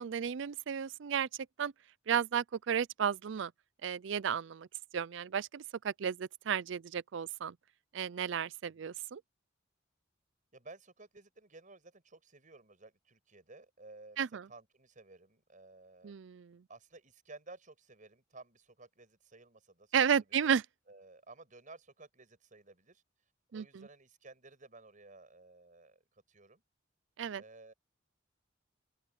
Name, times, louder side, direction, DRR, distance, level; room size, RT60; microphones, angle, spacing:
voice 1, 0.0-1.7 2.1-3.5 3.8-4.7 4.9-7.6 7.9-9.2 14.2-14.5 16.0-16.6 19.9-20.6 23.5-23.9 27.2-27.4, right 7 dB, 65° right, 0.4 m, -33 dB
voice 2, 10.5-16.1 16.7-20.0 20.4-20.5 20.9-23.0 23.5-26.6 27.4-27.7, right 3 dB, 40° right, 5.6 m, -55 dB
open air
head